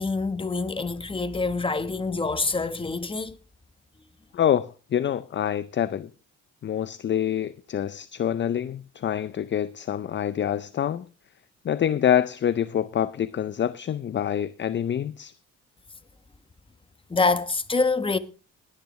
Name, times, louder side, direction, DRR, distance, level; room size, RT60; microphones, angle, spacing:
voice 1, 0.0-3.4 17.1-18.2, left 3 dB, 15° left, 1.1 m, -26 dB
voice 2, 4.3-6.1 6.6-11.0 11.6-15.3, left 9 dB, 40° left, 0.5 m, -26 dB
20.5 x 9.6 x 3.1 m
cardioid pair, 90°, 30 cm